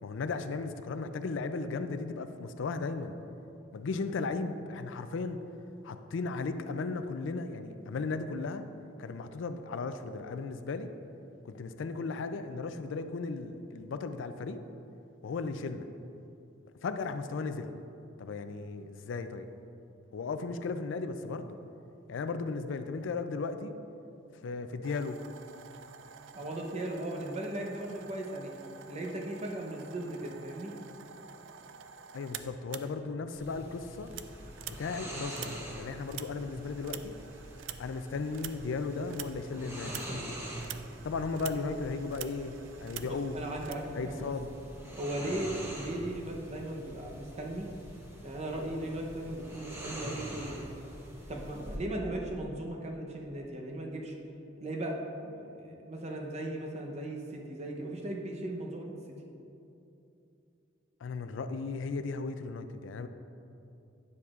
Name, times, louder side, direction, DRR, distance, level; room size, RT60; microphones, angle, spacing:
voice 1, 0.0-3.1 3.7-5.4 5.8-8.6 9.0-10.9 11.4-14.6 15.2-15.9 16.8-17.7 18.2-19.5 20.1-21.6 22.1-23.7 24.4-25.2 32.1-34.1 34.7-37.1 37.8-40.0 41.0-43.4 44.0-44.5 45.2-45.4 61.0-63.1, left 4 dB, 75° left, 9 dB, 0.4 m, -36 dB
sound 1, 24.8-33.5 33.7-43.7, right 9 dB, 70° right, 0.3 m, -48 dB
voice 2, 26.3-28.5 28.9-30.7 43.0-44.3 45.0-47.7 48.2-50.6 51.3-54.1 54.6-55.0 55.2-58.9, right 1 dB, 35° right, 1 dB, 0.8 m, -37 dB
sound 2, 33.3-51.8, right 1 dB, 15° right, 1.0 m, -44 dB
9.6 x 6.9 x 2.4 m, 2.8 s
head